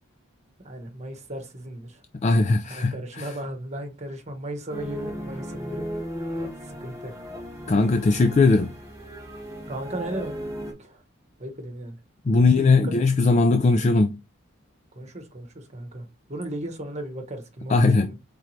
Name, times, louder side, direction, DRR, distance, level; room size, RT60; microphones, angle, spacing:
voice 1, 0.6-2.0 2.7-5.9 6.6-7.1 9.7-10.4 10.8-11.0 11.4-12.0 12.3-12.9 14.9-18.1, right 1 dB, 35° right, 1.2 m, -36 dB
voice 2, 2.2-3.3 7.7-8.7 12.3-14.2 17.7-18.1, left 3 dB, 35° left, 0.4 m, -19 dB
sound 1, 4.7-10.7, equal, 15° right, 1.7 m, -36 dB
4.5 x 3.7 x 3.2 m
head